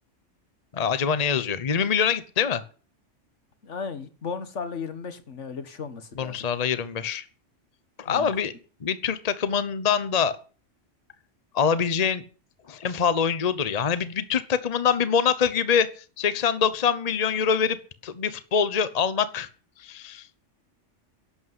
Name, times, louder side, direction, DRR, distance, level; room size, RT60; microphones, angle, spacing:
voice 1, 0.7-2.6 6.1-7.2 8.0-8.5 8.8-10.4 11.5-12.2 12.7-17.8 18.0-19.5 19.8-20.3, left 7 dB, 35° left, 0.9 m, -24 dB
voice 2, 3.6-6.4 8.1-8.3, left 5 dB, 70° left, 1.8 m, -35 dB
11.5 x 8.4 x 9.6 m
omnidirectional pair, 1.3 m